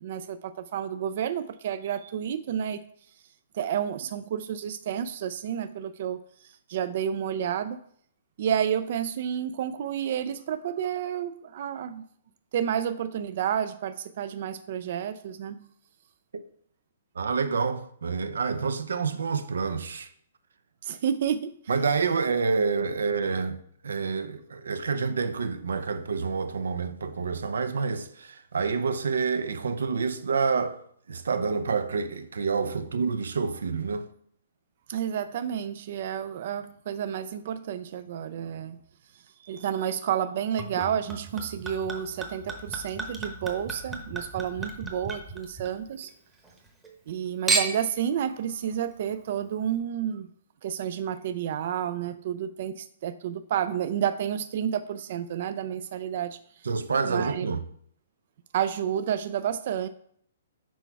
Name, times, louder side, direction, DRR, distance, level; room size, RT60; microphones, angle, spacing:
voice 1, 0.0-2.8 3.5-7.8 8.4-12.0 12.5-15.7 20.8-21.6 34.9-38.8 39.4-46.1 47.1-50.3 50.6-56.6 57.0-57.5 58.5-59.9, right 9 dB, 45° right, 0.3 m, -30 dB
voice 2, 17.2-20.1 21.7-30.8 31.1-34.1 56.6-57.6, right 5 dB, 90° right, 0.6 m, -28 dB
Chink clink / Liquid, 40.6-46.1 46.4-47.1 47.5-48.0 48.7-48.8, right 3 dB, 10° right, 0.9 m, -33 dB
6.1 x 4.6 x 4.5 m
hypercardioid pair, 165°, 0 cm